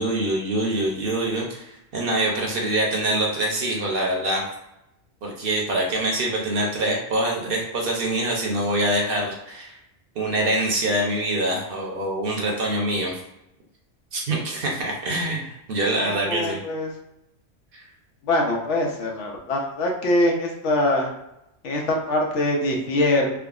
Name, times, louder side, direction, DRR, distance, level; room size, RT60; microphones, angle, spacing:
voice 1, 0.0-1.7 1.9-4.4 5.2-9.8 10.2-13.2 14.1-16.6 17.7-17.8, right 1 dB, 55° right, -1 dB, 0.7 m, -24 dB
voice 2, 16.0-16.9 18.3-21.1 21.6-23.3, left 1 dB, 85° left, 0 dB, 1.0 m, -23 dB
3.4 x 2.0 x 2.3 m, 0.85 s
omnidirectional pair, 1.2 m